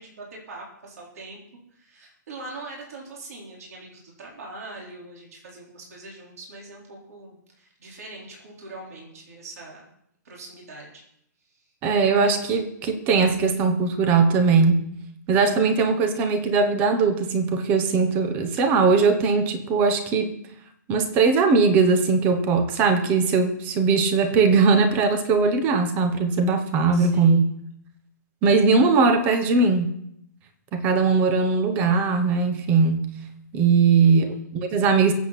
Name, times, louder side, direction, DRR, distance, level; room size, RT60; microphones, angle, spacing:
voice 1, 0.0-1.4 1.7-9.9 10.2-11.0 11.4-11.7 26.9-27.4 34.0-34.4, right 2 dB, 55° right, -3 dB, 4.4 m, -42 dB
voice 2, 11.8-14.8 15.3-20.4 20.9-27.5 28.4-29.9 30.7-33.1 33.5-35.1, right 4 dB, 15° right, 8 dB, 1.1 m, -20 dB
22.5 x 8.2 x 4.3 m, 0.71 s
hypercardioid pair, 170°, 10 cm